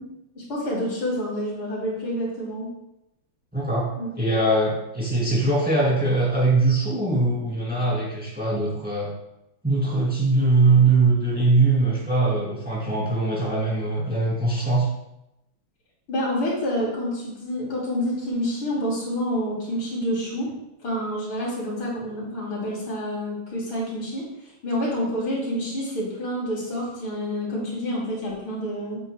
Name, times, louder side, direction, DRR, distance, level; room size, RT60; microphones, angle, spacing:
voice 1, 0.4-2.7 4.0-4.1 16.1-20.5 20.8-24.3 24.6-29.0, equal, 85° left, -5 dB, 3.6 m, -28 dB
voice 2, 3.5-3.9 4.2-9.1 9.6-14.9, right 3 dB, 5° right, -6 dB, 2.4 m, -21 dB
8.5 x 8.0 x 2.2 m, 0.87 s
omnidirectional pair, 2.2 m